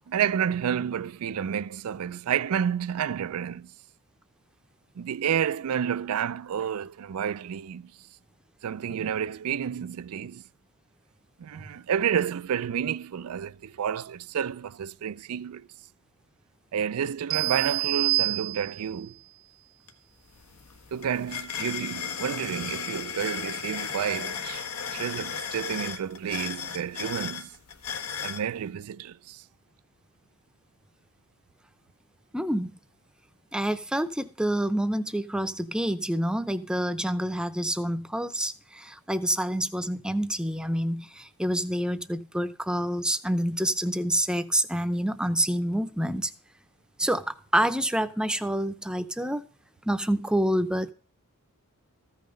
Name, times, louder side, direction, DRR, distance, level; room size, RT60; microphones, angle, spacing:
voice 1, 0.0-3.7 5.0-7.9 8.6-10.4 11.4-15.7 16.7-19.1 20.9-27.5 28.2-29.4, right 8 dB, 75° right, 0.4 m, -30 dB
sound 1, 17.3-19.0, right 18 dB, 40° right, 0.7 m, -27 dB
sound 2, 19.9-20.0 20.3-28.4, left 7 dB, 80° left, 1.4 m, -35 dB
voice 2, 32.3-32.8 33.5-46.3 47.0-49.5 49.8-50.9, right 1 dB, 5° right, 0.7 m, -27 dB
14.5 x 5.7 x 5.1 m
head